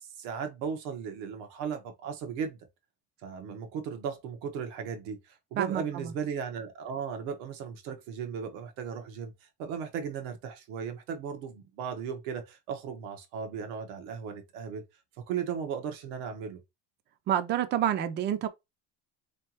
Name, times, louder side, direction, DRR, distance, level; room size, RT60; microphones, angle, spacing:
voice 1, 0.0-2.6 3.2-14.8 15.2-16.6, right 7 dB, 85° right, 1.3 m, -36 dB
voice 2, 5.6-6.1 17.3-18.5, right 10 dB, 30° right, 0.5 m, -28 dB
4.0 x 3.4 x 2.8 m
cardioid pair, 145°, 36 cm